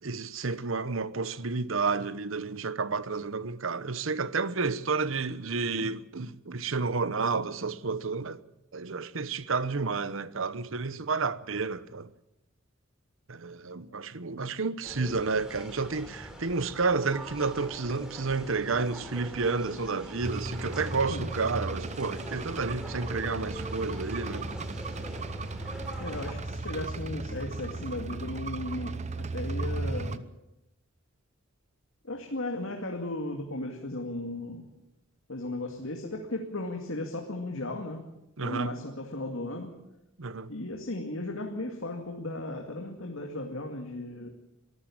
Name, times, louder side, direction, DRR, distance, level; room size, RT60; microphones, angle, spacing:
voice 1, 0.0-8.4 8.7-12.1 13.3-24.5 38.4-38.7 40.2-40.5, right 4 dB, 70° right, 0.9 m, -31 dB
sound 1, 14.8-26.3, equal, 5° right, 3.6 m, -43 dB
sound 2, 20.2-30.2, right 3 dB, 35° right, 0.8 m, -36 dB
voice 2, 26.0-30.3 32.0-34.7 35.3-38.1 38.4-39.8 40.5-44.3, left 2 dB, 70° left, 2.4 m, -36 dB
23.5 x 13.5 x 8.8 m
head